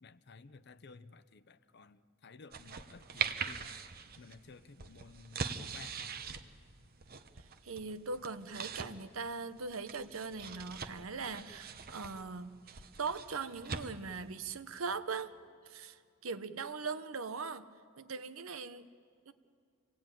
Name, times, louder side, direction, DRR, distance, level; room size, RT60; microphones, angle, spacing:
voice 1, 0.0-3.8 4.2-6.1, left 4 dB, 55° left, 13 dB, 0.7 m, -55 dB
sound 1, 2.5-14.3, right 6 dB, 45° right, 0.9 m, -43 dB
voice 2, 7.4-15.3 15.6-17.7 18.0-18.9 19.3-19.4, right 4 dB, 90° right, 11 dB, 0.9 m, -40 dB
27.0 x 18.0 x 9.1 m, 2.3 s
head